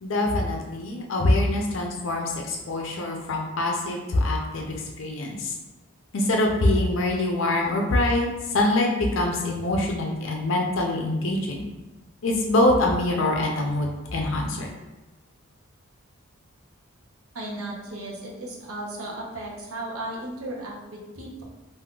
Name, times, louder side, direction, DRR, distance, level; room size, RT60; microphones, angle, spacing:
voice 1, 0.0-5.5 6.1-8.3 8.5-11.7 12.2-14.7, left 1 dB, 65° left, 0 dB, 0.5 m, -24 dB
voice 2, 17.3-21.4, right 1 dB, 90° right, -2 dB, 0.7 m, -35 dB
3.7 x 2.5 x 2.3 m, 1.1 s
head